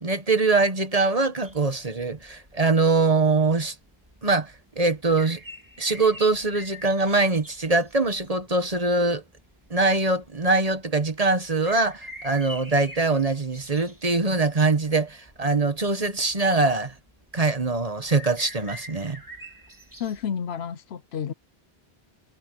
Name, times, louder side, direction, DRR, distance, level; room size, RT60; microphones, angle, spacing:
voice 1, 0.0-3.7 4.2-5.4 5.8-9.2 9.7-16.9 17.3-19.2, right 3 dB, 35° right, 1.4 m, -23 dB
sound 1, 1.4-20.3, equal, 20° right, 3.3 m, -47 dB
voice 2, 20.0-21.3, left 8 dB, 75° left, 1.0 m, -30 dB
omnidirectional pair, 1.1 m